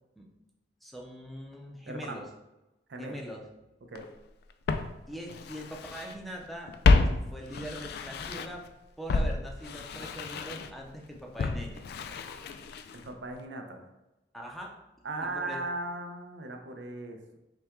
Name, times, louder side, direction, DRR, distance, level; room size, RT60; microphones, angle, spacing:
voice 1, 0.8-2.2 3.0-3.4 5.1-6.7 7.3-8.6 9.0-11.8 14.3-14.7 15.3-15.6, equal, ahead, -1 dB, 0.5 m, -42 dB
voice 2, 1.8-2.2 2.9-3.2 3.8-4.1 12.9-13.9 15.0-17.4, right 2 dB, 80° right, 4 dB, 0.6 m, -38 dB
Walk footsteps, 4.0-4.1 4.7-6.2 6.4-8.7 9.1-13.1 13.4-13.5, left 3 dB, 65° left, 0.3 m, -29 dB
5.5 x 2.3 x 3.6 m, 0.97 s
head